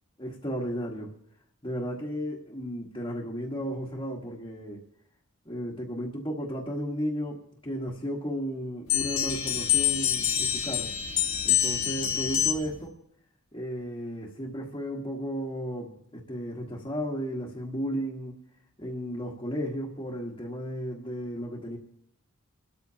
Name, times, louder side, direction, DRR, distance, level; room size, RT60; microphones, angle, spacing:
voice 1, 0.2-1.1 1.6-4.8 5.4-10.9 11.4-12.9 13.5-18.4 18.8-21.8, equal, 20° left, -5 dB, 1.5 m, -34 dB
sound 1, 8.9-12.8, left 10 dB, 85° left, 2.8 m, -26 dB
27.0 x 13.5 x 2.9 m, 0.73 s
head